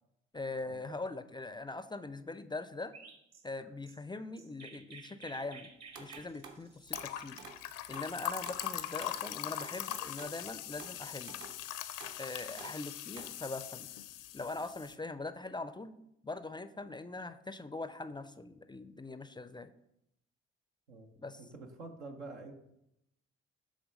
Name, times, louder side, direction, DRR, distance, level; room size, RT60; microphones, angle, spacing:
voice 1, 0.3-2.9 3.4-5.7 6.0-7.4 7.9-11.3 12.2-13.9 14.3-16.0 16.2-19.7 21.2-21.4, left 3 dB, 15° left, 12 dB, 0.4 m, -42 dB
Chirp tweet, 2.9-8.1, right 5 dB, 50° right, 1.1 m, -54 dB
sound 1, 5.9-6.6 6.9-7.7 7.9-8.1 8.5-9.2 9.6-10.4 10.8-11.0 11.3-11.6 12.0-12.2 12.6-12.8 13.1-13.4, right 5 dB, 65° right, 1.1 m, -51 dB
sound 2, 6.9-15.0, left 12 dB, 70° left, 0.5 m, -41 dB
voice 2, 21.4-22.5, right 3 dB, 90° right, 2 dB, 0.9 m, -47 dB
7.2 x 3.4 x 5.2 m, 0.81 s
hypercardioid pair, 45°, 33 cm